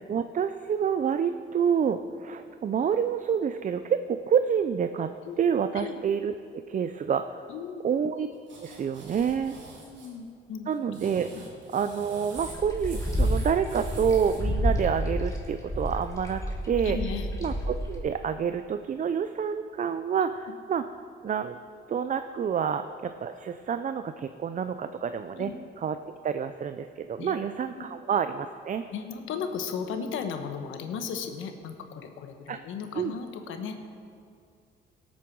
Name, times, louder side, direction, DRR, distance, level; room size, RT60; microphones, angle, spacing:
voice 1, 0.0-7.5 7.8-8.3 8.6-9.6 10.7-11.3 11.7-17.0 17.4-20.8 21.2-21.6 21.9-25.5 25.8-26.0 26.2-28.8 32.5-32.6 33.0-33.1, right 7 dB, 40° right, 10 dB, 0.5 m, -28 dB
voice 2, 7.5-7.9 9.4-10.7 11.3-11.4 16.8-17.3 20.2-20.4 25.4-25.5 27.2-27.4 27.7-27.9 28.9-33.9, left 6 dB, 85° left, 6 dB, 1.2 m, -36 dB
sound 1, 8.5-10.1 10.7-14.4, right 2 dB, 70° right, 3.1 m, -46 dB
sound 2, 12.4-18.0, equal, 15° left, 2.9 m, -29 dB
17.5 x 8.3 x 4.7 m, 2.4 s
cardioid pair, 90°, 20 cm